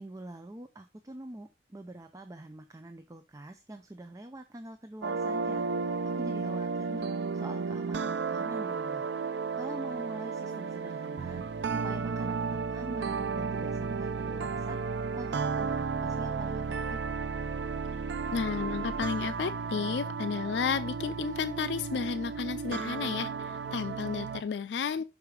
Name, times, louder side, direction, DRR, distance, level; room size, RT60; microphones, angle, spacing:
voice 1, 0.0-5.7 6.2-7.1 7.3-14.8 15.2-17.0 25.0-25.1, right 1 dB, 20° right, 0.5 m, -45 dB
sound 1, 5.0-24.4, right 5 dB, 85° right, 0.4 m, -33 dB
voice 2, 18.3-25.0, left 6 dB, 80° left, 0.4 m, -32 dB
6.0 x 4.8 x 4.8 m
head